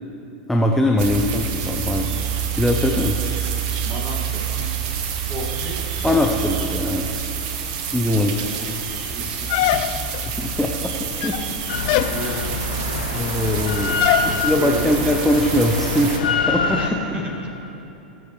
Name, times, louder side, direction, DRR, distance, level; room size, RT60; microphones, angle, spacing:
voice 1, 0.5-3.2 6.0-7.3 7.9-8.4 10.4-11.4 13.1-16.8, left 1 dB, 5° left, 1 dB, 0.8 m, -22 dB
sound 1, 1.0-16.2, right 7 dB, 55° right, 1.3 m, -27 dB
voice 2, 3.8-6.5 8.3-9.9 10.6-10.7 11.6-12.7 14.2-15.1 15.5-15.7 16.8-17.5, right 1 dB, 30° right, -3 dB, 2.2 m, -34 dB
sound 2, 9.5-10.3 11.1-11.5 11.9-12.2 14.0-14.3, left 14 dB, 55° left, 0.4 m, -21 dB
Drill, 11.7-16.9, left 4 dB, 85° left, 1.0 m, -25 dB
20.5 x 7.9 x 3.3 m, 3.0 s
hypercardioid pair, 105°, 5 cm